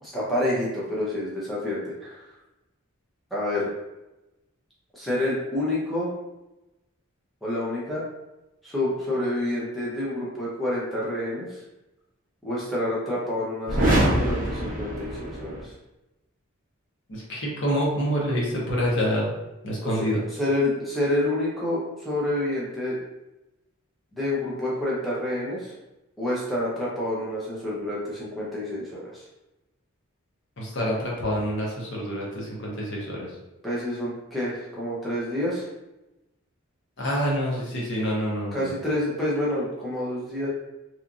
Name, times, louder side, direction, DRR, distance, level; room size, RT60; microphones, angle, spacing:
voice 1, 0.0-2.2 3.3-3.7 4.9-6.1 7.4-8.0 8.6-11.6 12.4-15.7 19.8-23.0 24.1-25.7 26.2-29.2 33.6-35.7 38.5-40.5, left 1 dB, ahead, -8 dB, 0.6 m, -28 dB
sound 1, 13.7-15.7, right 1 dB, 40° right, 0.5 m, -24 dB
voice 2, 17.1-19.3 19.6-20.2 30.6-33.3 37.0-38.7, equal, 60° left, -4 dB, 0.8 m, -27 dB
2.9 x 2.4 x 2.5 m, 0.98 s
head